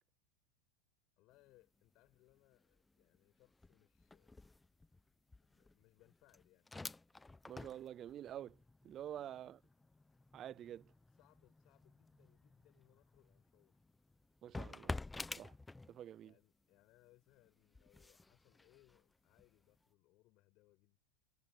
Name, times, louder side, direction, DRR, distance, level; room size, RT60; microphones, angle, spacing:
voice 1, 1.2-4.5 5.4-6.7 9.0-9.4 11.1-13.8 16.2-21.0, left 19 dB, 50° left, 5.1 m, -71 dB
sound 1, 1.3-1.6 1.9-16.3 16.7-19.8, left 2 dB, 10° left, 0.9 m, -51 dB
voice 2, 7.5-8.6 8.8-9.6 10.3-10.9 14.4-15.0 15.3-15.5 15.9-16.3, right 11 dB, 35° right, 0.3 m, -48 dB
hypercardioid pair, 110°, 0 cm